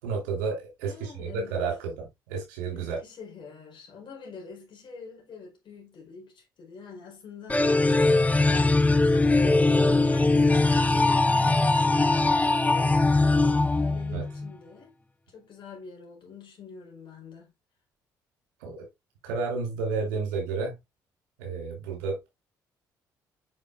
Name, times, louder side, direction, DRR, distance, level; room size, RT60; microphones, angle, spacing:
voice 1, 0.0-3.0 14.1-14.2 18.6-18.9 19.2-20.7 21.4-22.3, right 4 dB, 75° right, 3.5 m, -31 dB
voice 2, 0.8-1.6 2.7-8.0 8.4-17.5, left 5 dB, 50° left, 3.9 m, -45 dB
sound 1, 7.5-14.5, left 2 dB, 15° left, 0.8 m, -21 dB
7.9 x 6.2 x 2.5 m
figure-of-eight pair, 45°, 10 cm